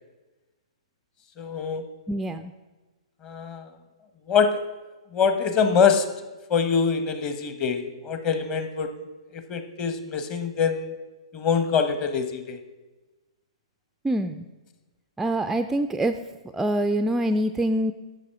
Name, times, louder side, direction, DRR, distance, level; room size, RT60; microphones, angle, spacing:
voice 1, 1.4-1.8 3.2-3.7 4.3-4.5 5.1-6.1 6.5-8.9 9.3-10.9 11.3-12.6, left 6 dB, 30° left, 8 dB, 1.0 m, -24 dB
voice 2, 2.1-2.5 14.0-14.5 15.2-16.2 16.5-17.9, right 1 dB, 5° right, 8 dB, 0.3 m, -25 dB
11.0 x 7.4 x 4.7 m, 1.2 s
hypercardioid pair, 125°, 3 cm